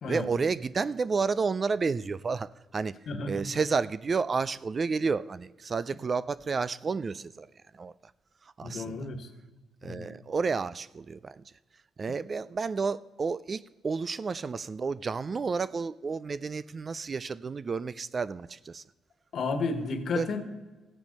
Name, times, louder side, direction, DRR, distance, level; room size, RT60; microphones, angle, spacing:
voice 1, 0.1-3.0 3.3-7.5 7.7-7.9 8.6-9.0 9.8-11.4 12.0-18.8 20.2-20.3, right 4 dB, 35° right, 17 dB, 0.3 m, -31 dB
voice 2, 3.1-3.4 8.6-9.3 9.8-10.1 19.3-20.4, left 3 dB, 60° left, 8 dB, 1.5 m, -32 dB
14.5 x 9.0 x 5.4 m, 1.2 s
cardioid pair, 90°, 0 cm